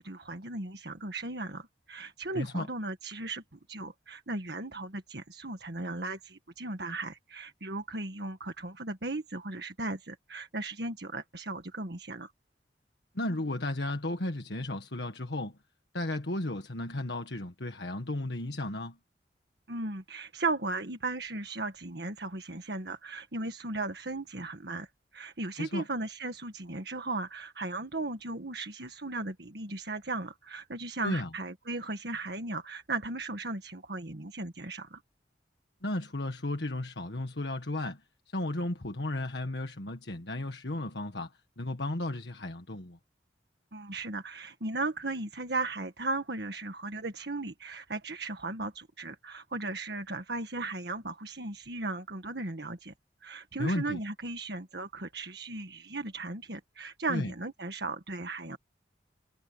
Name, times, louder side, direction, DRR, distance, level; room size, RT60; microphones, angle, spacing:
voice 1, 0.0-12.3 19.7-24.9 25.1-35.0 43.7-52.9 53.2-58.6, right 2 dB, 65° right, 1.7 m, -36 dB
voice 2, 2.3-2.7 13.1-15.5 15.9-19.0 25.6-25.8 31.0-31.3 35.8-38.0 38.3-41.3 41.6-43.0 53.6-54.0 57.1-57.3, left 1 dB, 75° left, 1.6 m, -34 dB
head